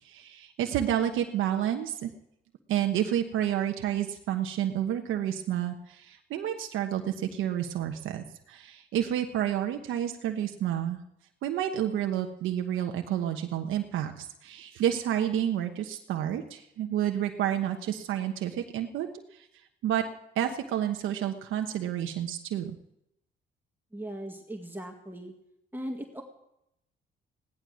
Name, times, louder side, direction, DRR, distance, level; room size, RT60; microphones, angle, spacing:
voice 1, 0.0-2.1 2.7-11.0 11.4-19.5 19.8-20.0 20.3-22.7, right 10 dB, 85° right, 4 dB, 1.1 m, -30 dB
voice 2, 23.9-25.3 25.7-26.2, right 1 dB, 10° right, 2 dB, 1.8 m, -38 dB
16.5 x 12.0 x 6.3 m, 0.80 s
cardioid pair, 90°, 20 cm